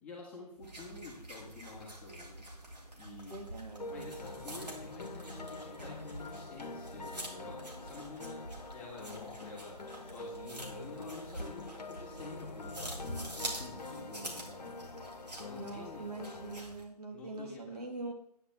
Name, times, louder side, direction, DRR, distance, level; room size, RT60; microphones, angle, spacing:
voice 1, 0.0-2.4 3.0-3.3 3.9-8.4 8.7-15.0 15.4-16.1 17.1-17.8, left 3 dB, 5° left, -6 dB, 1.5 m, -49 dB
sound 1, 0.6-16.8, right 1 dB, 85° right, 2.6 m, -46 dB
voice 2, 3.3-4.1 15.6-18.1, right 2 dB, 70° right, 3 dB, 1.8 m, -43 dB
sound 2, 3.8-16.6, left 3 dB, 80° left, 1.0 m, -46 dB
9.4 x 7.7 x 3.5 m, 0.73 s
figure-of-eight pair, 155°, 21 cm